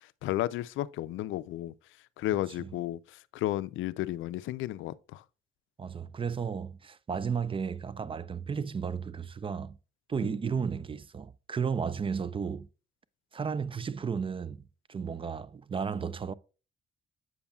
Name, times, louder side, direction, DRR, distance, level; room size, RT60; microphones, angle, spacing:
voice 1, 0.2-1.7 2.2-3.0 3.3-5.2 10.2-10.3, left 14 dB, 80° left, 0.4 m, -33 dB
voice 2, 5.8-9.8 10.1-12.7 13.3-16.3, right 6 dB, 25° right, 0.4 m, -33 dB
7.9 x 6.9 x 2.3 m
cardioid pair, 90°, 20 cm